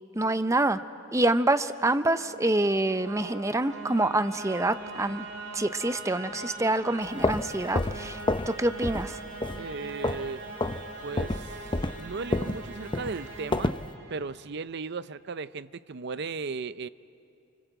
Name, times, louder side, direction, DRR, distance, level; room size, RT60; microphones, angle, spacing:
voice 1, 0.2-0.8 1.1-5.3 5.5-9.2, right 2 dB, 15° right, 11 dB, 0.7 m, -26 dB
sound 1, 1.6-14.6, right 3 dB, 75° right, 5.2 m, -42 dB
sound 2, 7.0-8.6 8.8-9.1 9.4-10.3 10.6-10.8 11.2-13.9, left 2 dB, 25° left, 0.7 m, -29 dB
voice 2, 9.5-10.4 11.0-11.6 12.0-13.8 14.1-16.9, right 4 dB, 55° right, 15 dB, 0.6 m, -36 dB
29.5 x 25.0 x 8.1 m, 2.7 s
head